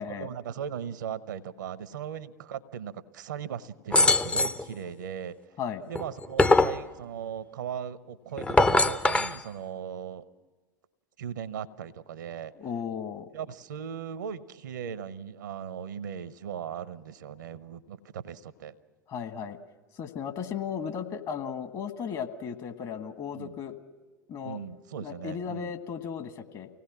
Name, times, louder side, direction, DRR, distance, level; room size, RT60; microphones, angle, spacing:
voice 1, 0.1-5.4 5.9-10.2 11.2-12.5 13.3-18.8 23.3-23.6 24.4-25.7, right 8 dB, 70° right, 16 dB, 0.8 m, -38 dB
sound 1, 3.9-4.6 6.0-6.8 8.4-9.4, left 2 dB, 10° left, 0.6 m, -22 dB
voice 2, 12.6-13.3 19.1-19.6 20.0-23.8 24.3-24.6 25.0-26.7, left 7 dB, 40° left, 8 dB, 1.6 m, -35 dB
24.5 x 18.0 x 6.0 m, 1.3 s
figure-of-eight pair, 80°, 10 cm